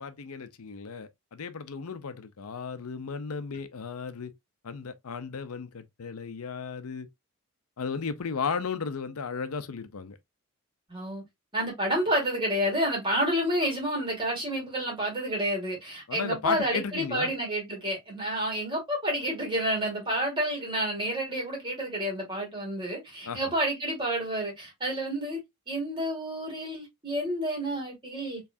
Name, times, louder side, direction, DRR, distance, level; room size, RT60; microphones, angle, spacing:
voice 1, 0.0-4.3 4.6-7.1 7.8-10.2 16.1-17.3 23.2-23.5, left 5 dB, 80° left, 0.6 m, -35 dB
voice 2, 10.9-11.2 11.5-25.4 25.7-28.4, right 1 dB, 20° right, 2.5 m, -29 dB
4.6 x 3.2 x 2.6 m
head